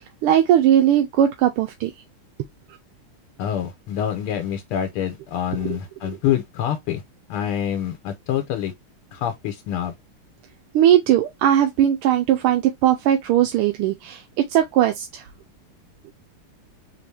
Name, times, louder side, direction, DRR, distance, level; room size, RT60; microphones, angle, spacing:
voice 1, 0.0-1.9 5.6-5.8 10.7-15.2, right 11 dB, 85° right, 1.6 m, -19 dB
voice 2, 3.4-7.0 7.3-8.7 9.1-9.9, left 10 dB, 85° left, 1.7 m, -26 dB
4.3 x 3.0 x 3.3 m
omnidirectional pair, 2.4 m